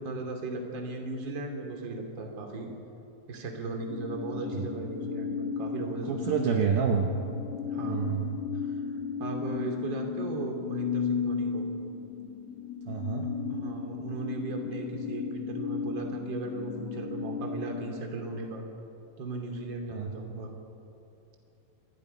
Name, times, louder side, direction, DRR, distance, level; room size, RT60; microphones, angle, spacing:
voice 1, 0.0-2.7 3.3-6.3 7.7-8.1 8.6-8.7 9.2-11.7 13.5-18.6 19.2-20.5, right 3 dB, 35° right, 2 dB, 2.2 m, -37 dB
sound 1, 3.9-18.0, left 6 dB, 55° left, 3.3 m, -35 dB
voice 2, 6.1-7.1 7.8-8.3 12.9-13.3 19.9-20.1, right 7 dB, 80° right, 2 dB, 2.1 m, -28 dB
27.0 x 22.0 x 5.4 m, 2.9 s
omnidirectional pair, 5.9 m